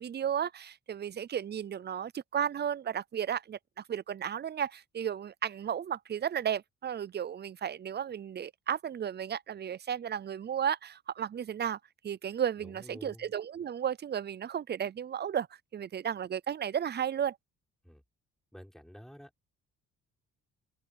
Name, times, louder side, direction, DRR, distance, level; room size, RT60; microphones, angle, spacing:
voice 1, 0.0-11.8 12.0-15.5 15.7-17.4, right 9 dB, 35° right, 0.5 m, -34 dB
voice 2, 12.6-13.3 17.8-18.0 18.5-19.3, equal, ahead, 6.0 m, -50 dB
open air
cardioid pair, 90°, 30 cm